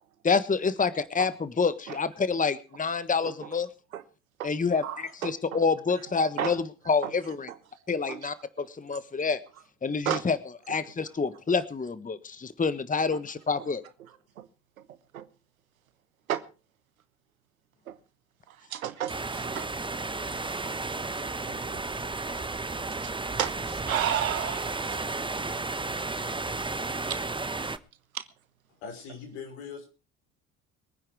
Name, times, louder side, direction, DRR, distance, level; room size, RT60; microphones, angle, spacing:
voice 1, 0.2-3.7 4.4-4.8 5.2-7.5 7.9-9.4 9.8-10.4 10.7-13.8, left 5 dB, 20° left, 1.3 m, -27 dB
voice 2, 4.8-5.3 6.4-6.6 7.0-7.1 8.1-8.3 10.0-10.2 14.4-14.5 15.1-15.3 16.3-16.4 17.9-18.0 18.5-19.7 21.5-21.9 23.0-23.1 23.4-25.2 27.1-27.2 28.1-28.2, right 11 dB, 85° right, 1.2 m, -32 dB
sound 1, 19.1-27.8, right 3 dB, 10° right, 1.1 m, -33 dB
voice 3, 28.8-29.9, left 6 dB, 70° left, 5.6 m, -41 dB
22.5 x 9.9 x 4.7 m
hypercardioid pair, 55°, 41 cm